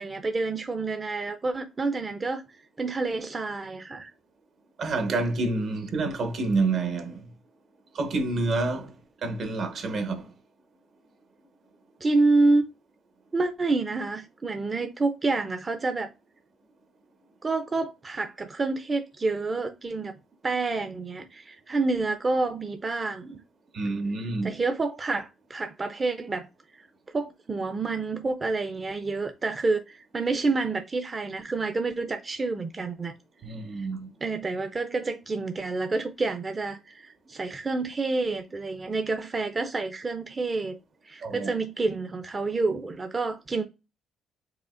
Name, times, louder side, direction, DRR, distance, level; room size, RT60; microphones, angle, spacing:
voice 1, 0.0-2.4 2.8-4.1 12.0-12.6 13.3-16.1 17.4-20.2 20.4-23.4 24.4-26.5 27.1-33.1 33.8-33.9 34.2-40.7 41.1-43.6, right 3 dB, 30° right, 0.4 m, -28 dB
voice 2, 4.8-7.2 7.9-8.9 9.2-10.3 23.7-24.5 33.4-34.1 41.2-41.5, right 3 dB, 65° right, 0.9 m, -28 dB
4.9 x 2.8 x 2.4 m
cardioid pair, 90°, 0 cm